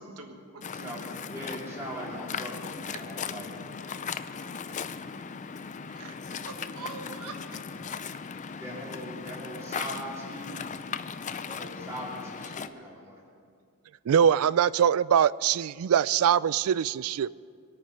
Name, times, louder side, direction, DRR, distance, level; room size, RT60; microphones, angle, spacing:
voice 1, 0.0-0.9 2.9-3.0 5.9-7.4, right 4 dB, 90° right, 4 dB, 1.5 m, -43 dB
Waves surf, 0.6-12.7, left 6 dB, 35° left, 0.5 m, -38 dB
voice 2, 0.7-3.5 8.6-10.7 11.4-13.2, equal, 15° right, -7 dB, 3.2 m, -40 dB
voice 3, 14.1-17.4, right 8 dB, 70° right, 20 dB, 0.3 m, -23 dB
25.0 x 9.1 x 5.3 m, 2.2 s
head